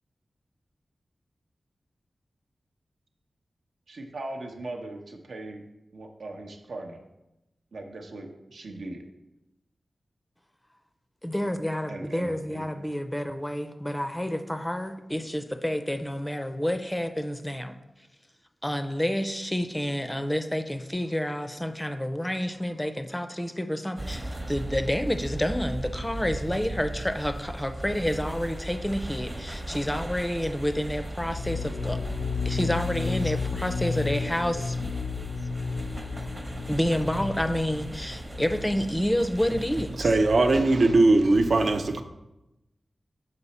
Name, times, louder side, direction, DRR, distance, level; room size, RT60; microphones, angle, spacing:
voice 1, 3.9-5.6 5.9-7.0 7.7-9.0 11.9-12.9, right 2 dB, 90° right, 0.9 m, -39 dB
voice 2, 11.2-17.7 18.6-32.0 32.5-34.9 36.7-40.2, equal, 10° left, 0.4 m, -29 dB
sound 1, 24.0-40.6, right 1 dB, 30° right, 0.8 m, -37 dB
sound 2, 31.2-38.9, left 5 dB, 80° left, 0.3 m, -33 dB
voice 3, 40.0-42.0, right 2 dB, 65° right, 0.5 m, -20 dB
6.8 x 5.2 x 4.1 m
wide cardioid pair, 120°, 0 cm